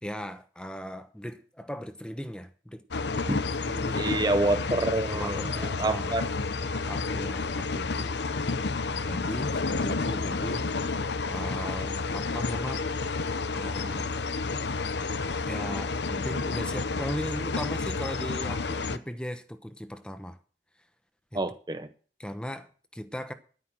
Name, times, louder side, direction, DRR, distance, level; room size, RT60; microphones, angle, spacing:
voice 1, 0.0-2.8 3.3-3.4 3.7-4.2 5.1-6.2 6.9-8.2 9.0-10.7 11.3-12.9 13.5-14.1 15.5-20.4 21.3-21.4 22.2-23.3, equal, 5° left, 0.9 m, -38 dB
sound 1, 2.9-19.0, left 4 dB, 75° left, 0.8 m, -30 dB
voice 2, 3.9-5.5 5.8-6.2 21.3-21.9, right 2 dB, 25° right, 0.9 m, -27 dB
11.0 x 9.8 x 6.2 m
head